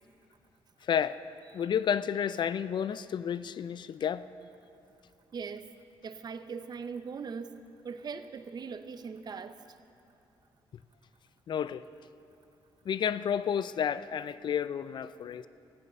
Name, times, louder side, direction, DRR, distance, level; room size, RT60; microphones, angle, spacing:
voice 1, 0.8-1.2 1.5-4.3 11.5-11.8 12.9-15.5, left 8 dB, 55° left, 15 dB, 0.4 m, -31 dB
voice 2, 5.3-5.7 6.0-7.5 7.8-9.6, right 5 dB, 50° right, 10 dB, 0.7 m, -40 dB
15.5 x 9.2 x 6.7 m, 2.6 s
cardioid pair, 90°, 9 cm